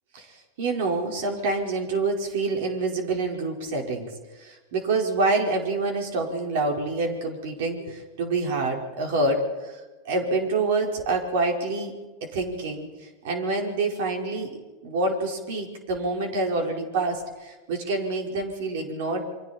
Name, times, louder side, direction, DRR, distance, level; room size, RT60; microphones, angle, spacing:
voice 1, 0.1-4.1 4.4-9.7 10.0-11.9 12.2-14.5 14.8-19.2, right 3 dB, 75° right, 2 dB, 4.7 m, -27 dB
28.5 x 23.5 x 4.4 m, 1.2 s
supercardioid pair, 120°, 0 cm